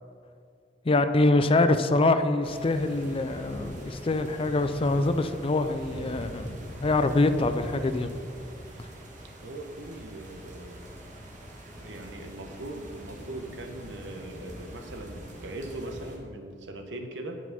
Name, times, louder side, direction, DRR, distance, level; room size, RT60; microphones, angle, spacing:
voice 1, 0.8-6.5 6.8-8.1, left 2 dB, 30° left, 10 dB, 0.4 m, -24 dB
sound 1, 2.4-16.2, equal, 45° right, 1.5 m, -43 dB
voice 2, 9.4-10.8 11.8-17.4, right 1 dB, 80° right, 5 dB, 1.0 m, -40 dB
9.4 x 6.2 x 5.9 m, 2.4 s
head